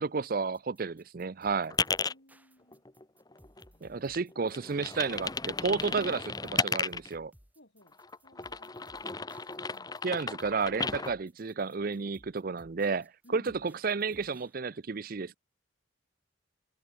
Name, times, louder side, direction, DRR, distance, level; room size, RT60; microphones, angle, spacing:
voice 1, 0.0-1.8 3.8-7.3 10.0-15.4, right 4 dB, 45° right, 0.5 m, -32 dB
sound 1, 0.5-14.5, equal, 10° right, 3.1 m, -61 dB
sound 2, 1.7-2.1 2.7-3.9 4.1-7.1 7.9-11.1, left 4 dB, 20° left, 1.0 m, -34 dB
voice 2, 2.0-2.9 3.7-4.0 7.5-9.2 9.7-9.9 13.2-13.5, equal, 60° left, 7.9 m, -60 dB
head